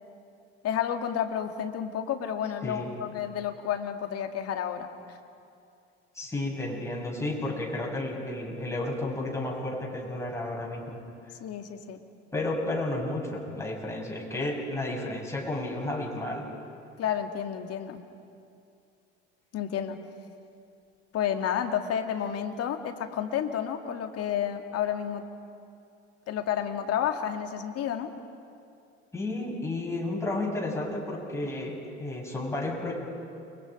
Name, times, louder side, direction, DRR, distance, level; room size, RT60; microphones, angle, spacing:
voice 1, 0.6-5.2 11.4-12.0 17.0-18.0 19.5-20.0 21.1-25.2 26.3-28.1, left 9 dB, 45° left, 6 dB, 2.1 m, -31 dB
voice 2, 6.1-11.0 12.3-16.5 29.1-32.9, left 2 dB, 10° left, -3 dB, 7.5 m, -32 dB
29.5 x 23.5 x 5.2 m, 2.5 s
hypercardioid pair, 70°, 33 cm